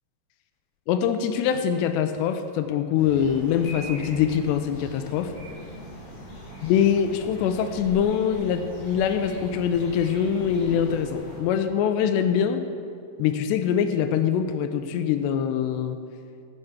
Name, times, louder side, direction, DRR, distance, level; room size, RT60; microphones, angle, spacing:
voice 1, 0.9-5.3 6.6-12.6 13.2-16.0, left 8 dB, 90° left, 8 dB, 2.8 m, -24 dB
sound 1, 3.0-11.4, equal, 60° left, 3.6 m, -40 dB
13.5 x 6.7 x 5.8 m, 2.2 s
omnidirectional pair, 4.8 m